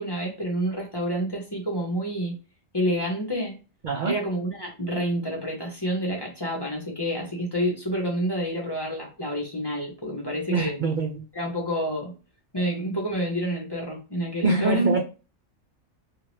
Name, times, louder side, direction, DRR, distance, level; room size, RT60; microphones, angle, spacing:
voice 1, 0.0-2.3 2.7-3.6 4.0-10.8 11.3-12.1 12.5-15.0, equal, 20° left, -2 dB, 0.9 m, -28 dB
voice 2, 3.8-4.2 10.5-11.2 12.5-13.0 14.4-15.0, right 4 dB, 60° right, 2 dB, 0.5 m, -25 dB
2.7 x 2.5 x 3.1 m, 0.32 s
omnidirectional pair, 1.3 m